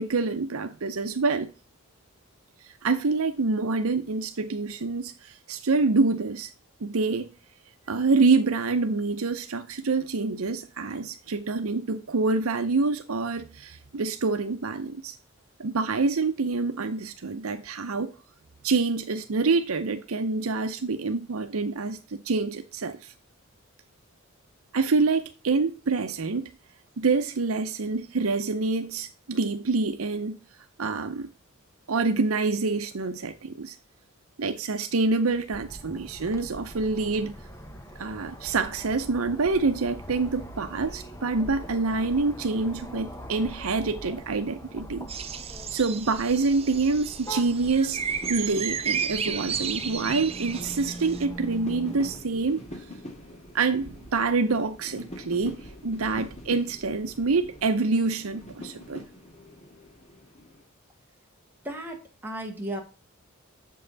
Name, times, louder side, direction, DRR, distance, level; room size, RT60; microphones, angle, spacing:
voice 1, 0.0-1.5 2.8-6.5 6.8-7.3 7.9-15.1 15.6-18.1 18.6-23.1 24.7-26.5 27.0-30.4 30.8-31.3 31.9-33.8 34.4-37.3 38.0-45.1 45.7-48.0 48.3-52.6 53.5-59.0, right 3 dB, 85° right, 0.7 m, -26 dB
sound 1, 35.5-52.2, equal, 15° left, 1.0 m, -42 dB
sound 2, 45.1-51.3, right 7 dB, 30° right, 0.5 m, -33 dB
sound 3, 46.3-60.6, left 1 dB, 30° left, 2.0 m, -44 dB
voice 2, 61.6-62.8, right 1 dB, 10° right, 1.4 m, -35 dB
7.6 x 5.6 x 4.0 m
head